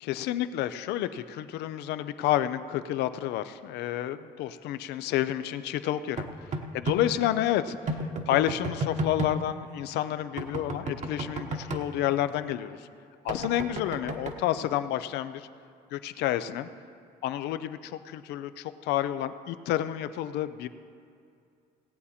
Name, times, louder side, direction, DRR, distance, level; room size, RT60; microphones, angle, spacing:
voice 1, 0.0-6.3 6.7-8.0 8.3-12.8 13.2-15.5 15.9-16.7 17.2-20.7, left 12 dB, 85° left, 12 dB, 0.5 m, -30 dB
sound 1, 6.2-7.0 7.9-9.4 10.4-11.8 13.3-14.4, right 2 dB, 45° right, 1.1 m, -32 dB
18.0 x 8.4 x 4.3 m, 2.4 s
cardioid pair, 110°, 17 cm